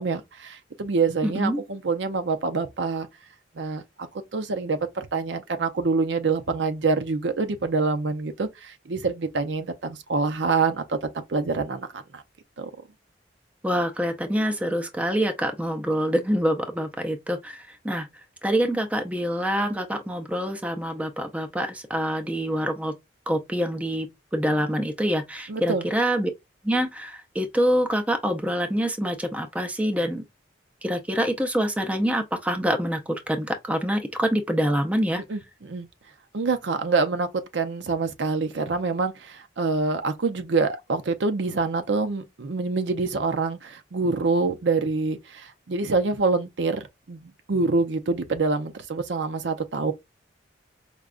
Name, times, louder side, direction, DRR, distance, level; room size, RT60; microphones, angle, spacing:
voice 1, 0.0-3.1 3.6-3.8 4.3-12.2 12.6-12.7 25.5-25.8 35.3-35.9 36.3-49.9, right 4 dB, 80° right, 0.6 m, -26 dB
voice 2, 1.2-1.6 13.6-18.1 18.4-22.9 23.3-26.3 26.6-30.2 30.8-35.2, equal, 10° right, 0.4 m, -26 dB
4.9 x 2.3 x 2.4 m
head